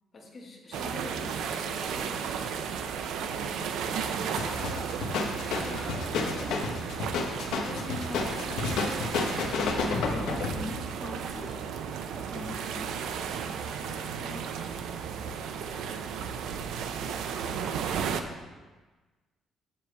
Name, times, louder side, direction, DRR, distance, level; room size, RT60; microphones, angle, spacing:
voice 1, 0.1-2.4 3.0-6.8 7.6-9.4 13.1-13.5, left 2 dB, 30° left, -2 dB, 1.5 m, -44 dB
sound 1, 0.7-18.2, right 7 dB, 75° right, 0.5 m, -34 dB
sound 2, 4.4-10.6, left 4 dB, 80° left, 1.1 m, -31 dB
voice 2, 9.6-11.6 12.3-12.9 13.8-14.4, left 2 dB, 15° left, 1 dB, 1.0 m, -42 dB
7.8 x 7.3 x 3.3 m, 1.3 s
cardioid pair, 155°, 0 cm